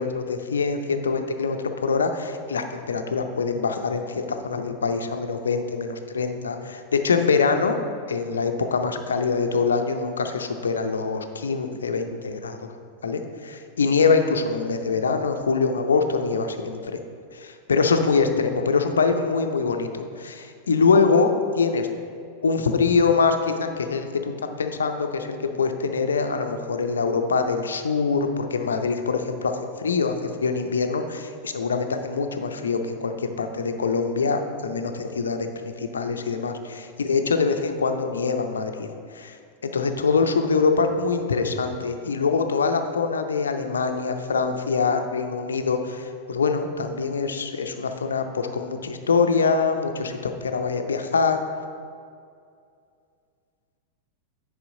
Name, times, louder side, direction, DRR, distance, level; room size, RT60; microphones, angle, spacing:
voice 1, 0.0-7.8 8.1-12.7 13.0-16.9 17.3-21.9 22.4-24.3 24.6-30.2 30.4-35.5 35.8-38.9 39.1-39.4 39.6-51.4, left 4 dB, 70° left, 6 dB, 0.6 m, -24 dB
9.8 x 5.0 x 3.8 m, 2.4 s
figure-of-eight pair, 90°, 0 cm